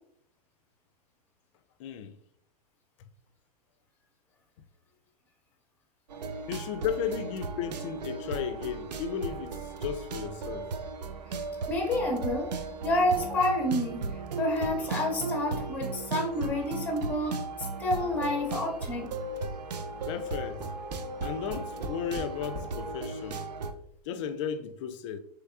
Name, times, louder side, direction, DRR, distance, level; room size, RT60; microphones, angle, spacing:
voice 1, 1.8-2.1 6.5-10.7 20.1-20.6 21.2-23.4 24.1-25.2, left 8 dB, 50° left, 0.4 m, -34 dB
sound 1, 6.1-23.7, right 3 dB, 85° right, 0.4 m, -36 dB
voice 2, 11.7-12.5 12.8-19.1, left 1 dB, 10° left, 0.7 m, -29 dB
Tap, 20.0-22.8 23.6-23.7 24.0-24.1, right 1 dB, 35° right, 0.6 m, -41 dB
3.4 x 3.1 x 2.3 m
hypercardioid pair, 115°, 21 cm